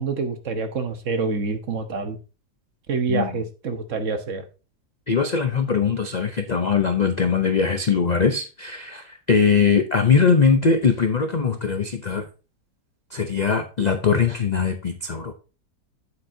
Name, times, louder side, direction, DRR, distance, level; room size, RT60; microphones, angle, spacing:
voice 1, 0.0-2.2 2.9-4.4, right 4 dB, 55° right, 7 dB, 1.4 m, -26 dB
voice 2, 3.1-3.4 5.1-12.3 13.1-15.3, left 5 dB, 55° left, 7 dB, 0.4 m, -21 dB
8.7 x 8.0 x 2.7 m, 0.32 s
omnidirectional pair, 1.7 m